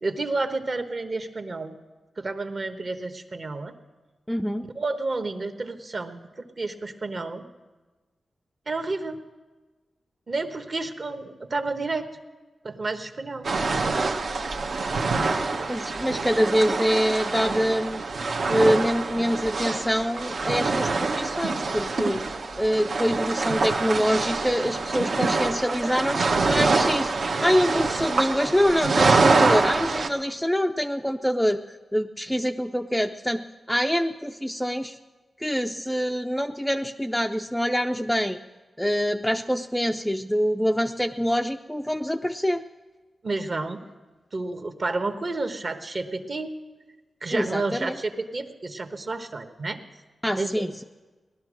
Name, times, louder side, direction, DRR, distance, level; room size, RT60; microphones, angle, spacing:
voice 1, 0.0-1.8 2.2-3.7 4.7-7.4 8.7-9.2 10.3-12.1 12.6-13.5 14.4-14.6 15.2-15.6 43.2-43.8 44.3-46.5 47.2-49.8 50.4-50.6, right 3 dB, 45° right, 7 dB, 1.1 m, -30 dB
voice 2, 4.3-4.7 15.7-18.0 18.5-35.0 35.4-38.4 38.8-42.6 47.3-48.0 50.2-50.8, equal, 5° left, 5 dB, 0.4 m, -25 dB
sound 1, 13.4-30.1, right 3 dB, 65° right, 1.1 m, -25 dB
18.0 x 12.0 x 6.2 m, 1.3 s
wide cardioid pair, 115°, 0 cm